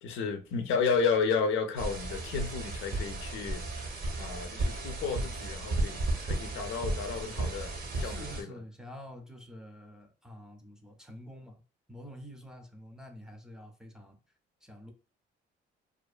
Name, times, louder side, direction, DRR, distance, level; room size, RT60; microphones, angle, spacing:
voice 1, 0.0-3.6 4.2-8.5, left 5 dB, 85° left, 0.5 m, -32 dB
sound 1, 1.8-8.4, right 2 dB, 50° right, 0.6 m, -34 dB
voice 2, 8.0-11.6 11.9-14.2 14.6-14.9, equal, 5° right, 0.5 m, -48 dB
2.4 x 2.3 x 2.4 m
cardioid pair, 90°, 20 cm